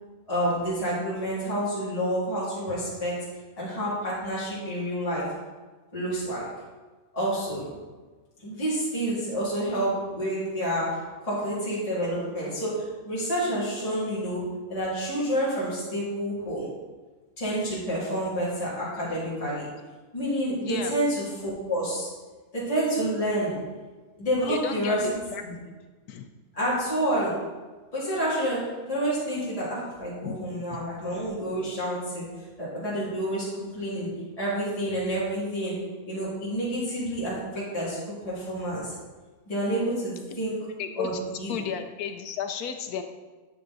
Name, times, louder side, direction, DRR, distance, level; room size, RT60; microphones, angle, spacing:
voice 1, 0.3-3.3 3.6-5.3 5.9-6.5 7.1-7.7 8.4-16.7 17.4-19.7 20.1-22.1 22.5-23.6 24.2-25.2 25.4-25.6 26.5-27.4 27.9-32.3 32.6-35.8 36.1-38.9 39.5-40.7 41.0-41.1 41.4-41.5, right 1 dB, 20° left, -9 dB, 2.6 m, -29 dB
voice 2, 20.6-20.9 24.5-25.4 26.1-26.3 30.2-30.5 40.8-41.1 41.5-43.0, left 7 dB, 80° left, 7 dB, 1.1 m, -33 dB
9.6 x 6.7 x 4.0 m, 1.3 s
omnidirectional pair, 1.6 m